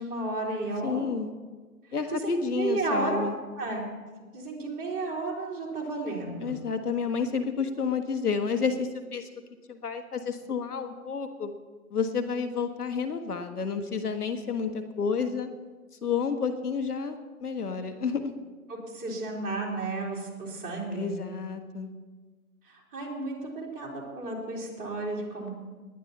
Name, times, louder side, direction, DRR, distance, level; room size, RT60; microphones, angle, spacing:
voice 1, 0.0-1.1 2.1-3.3 3.6-3.8 4.3-6.6 18.7-21.1 22.6-25.5, right 2 dB, 20° right, -4 dB, 3.5 m, -33 dB
voice 2, 0.8-1.3 1.9-3.3 6.4-9.3 9.7-11.5 11.9-15.5 16.0-18.3 20.9-21.9, left 5 dB, 85° left, 7 dB, 1.5 m, -30 dB
19.5 x 10.0 x 4.3 m, 1.4 s
figure-of-eight pair, 135°, 45 cm